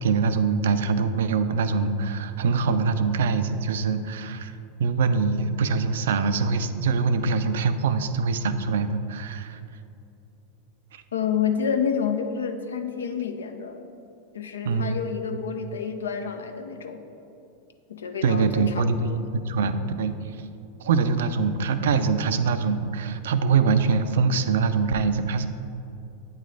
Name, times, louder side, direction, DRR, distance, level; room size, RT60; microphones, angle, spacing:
voice 1, 0.0-4.5 4.8-9.6 10.9-11.0 14.6-15.0 18.2-20.1 20.8-25.5, right 5 dB, 75° right, 10 dB, 0.3 m, -24 dB
voice 2, 11.1-13.8 14.3-17.0 17.9-19.3, left 7 dB, 85° left, 7 dB, 0.4 m, -29 dB
8.3 x 3.2 x 3.9 m, 2.8 s
hypercardioid pair, 100°, 0 cm